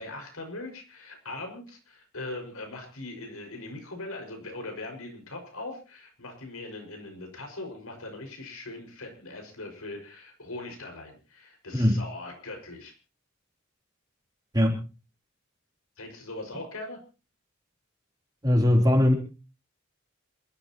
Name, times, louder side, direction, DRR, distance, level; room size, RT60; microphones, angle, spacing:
voice 1, 0.0-12.9 16.0-17.0, left 2 dB, 85° left, 3 dB, 5.7 m, -40 dB
voice 2, 18.4-19.1, left 1 dB, 20° right, 1 dB, 3.4 m, -20 dB
27.5 x 13.0 x 3.0 m, 0.34 s
head